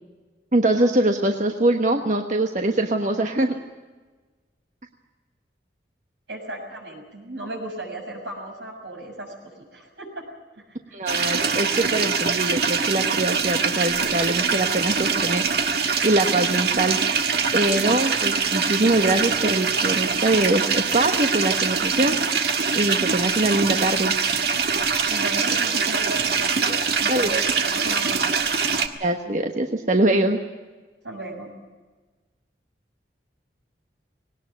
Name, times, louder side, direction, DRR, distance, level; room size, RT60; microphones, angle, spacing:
voice 1, 0.5-3.6 10.9-15.6 16.0-17.0 17.5-24.1 27.1-27.4 29.0-30.4, right 2 dB, 40° right, 4 dB, 1.2 m, -23 dB
voice 2, 6.3-10.2 10.5-11.0 25.1-28.4 31.0-31.5, right 1 dB, 85° right, 2 dB, 7.1 m, -36 dB
sound 1, 11.1-28.9, right 5 dB, 65° right, 1.6 m, -23 dB
19.5 x 18.5 x 9.4 m, 1.3 s
head